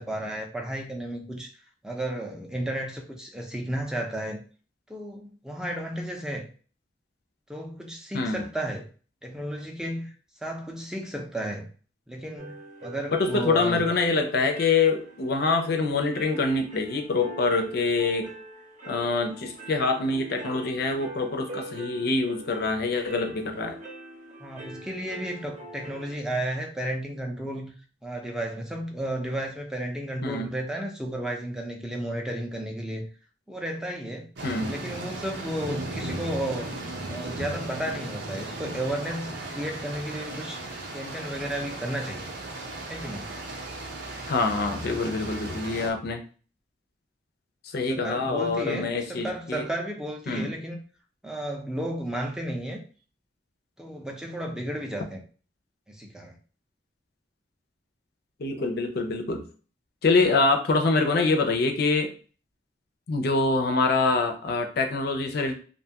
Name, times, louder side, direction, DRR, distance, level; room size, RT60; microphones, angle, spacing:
voice 1, 0.0-1.5 1.8-4.4 4.9-6.5 7.5-8.9 9.2-10.1 10.4-11.7 12.1-13.8 24.4-27.7 28.0-33.1 33.5-34.3 34.7-36.7 37.1-40.6 40.9-42.3 42.9-43.3 47.9-50.8 51.2-52.8 53.8-55.2 55.9-56.4, right 1 dB, 5° right, 0.5 m, -33 dB
voice 2, 8.1-8.5 13.1-18.3 18.9-23.8 30.2-30.5 34.4-34.8 44.3-46.2 47.6-49.7 50.3-50.5 58.4-59.5 60.0-62.1 63.1-65.5, left 3 dB, 55° left, 0.5 m, -25 dB
sound 1, 12.4-26.2, right 1 dB, 45° right, 0.7 m, -44 dB
sound 2, 34.4-45.9, right 2 dB, 75° right, 0.7 m, -36 dB
2.6 x 2.3 x 2.8 m
head